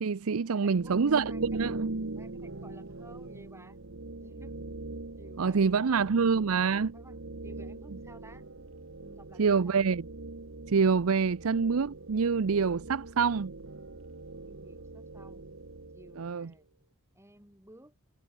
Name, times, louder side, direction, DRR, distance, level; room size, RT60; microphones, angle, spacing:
voice 1, 0.0-1.9 5.4-6.9 9.4-10.0 10.7-13.5 16.2-16.5, right 5 dB, 90° right, 0.6 m, -26 dB
voice 2, 0.5-1.0 1.3-1.6 2.1-3.8 4.2-4.7 5.2-6.2 6.9-8.4 9.0-10.0 14.4-15.5 15.9-16.7 17.1-17.9, right 1 dB, 15° right, 4.3 m, -55 dB
sound 1, 0.7-16.5, right 2 dB, 65° right, 1.3 m, -42 dB
head